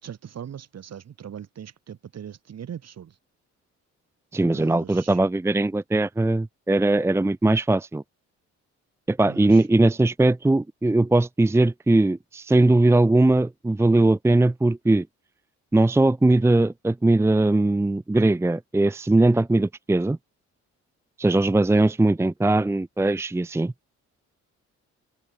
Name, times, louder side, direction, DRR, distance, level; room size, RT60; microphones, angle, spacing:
voice 1, 0.0-3.2 4.5-5.2 9.3-9.7, right 9 dB, 55° right, 5.1 m, -40 dB
voice 2, 4.3-8.0 9.1-15.1 15.7-20.2 21.2-23.7, right 2 dB, 10° right, 0.7 m, -20 dB
open air
cardioid pair, 90°, 30 cm